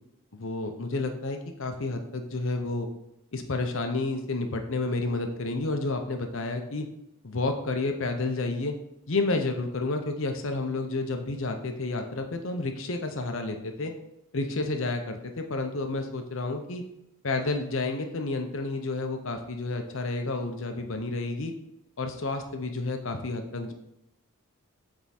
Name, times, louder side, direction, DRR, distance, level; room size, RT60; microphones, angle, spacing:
voice 1, 0.3-2.9 3.3-6.9 7.2-8.8 9.1-13.9 14.3-16.8 17.2-21.5 22.0-23.7, left 3 dB, 60° left, 5 dB, 0.8 m, -30 dB
7.7 x 3.6 x 4.3 m, 0.82 s
head